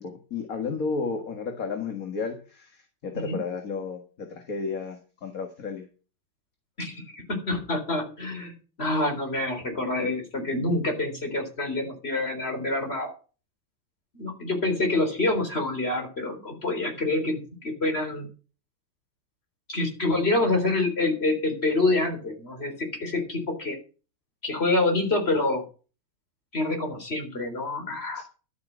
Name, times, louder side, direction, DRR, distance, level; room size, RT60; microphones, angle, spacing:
voice 1, 0.0-5.9 28.1-28.2, left 4 dB, 45° left, 5 dB, 2.1 m, -33 dB
voice 2, 7.3-8.5 8.8-13.1 14.1-18.3 19.7-23.8 24.4-25.6 26.5-28.2, left 2 dB, 30° left, 4 dB, 4.0 m, -27 dB
12.0 x 8.6 x 6.2 m, 0.35 s
omnidirectional pair, 2.3 m